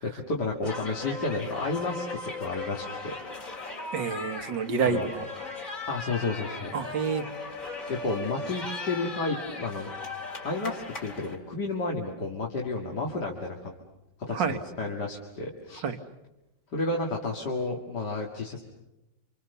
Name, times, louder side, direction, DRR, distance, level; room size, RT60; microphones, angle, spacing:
voice 1, 0.0-3.1 4.8-5.1 5.9-6.7 7.9-9.9 10.4-13.7 14.2-15.8 16.7-18.6, left 3 dB, 60° left, -1 dB, 2.9 m, -31 dB
sound 1, 0.6-11.4, left 3 dB, 40° left, 3.6 m, -38 dB
voice 2, 3.9-5.3 6.7-7.3 14.3-14.6 15.8-16.0, right 5 dB, 70° right, 9 dB, 2.2 m, -28 dB
29.5 x 26.5 x 6.9 m, 0.94 s
omnidirectional pair, 2.1 m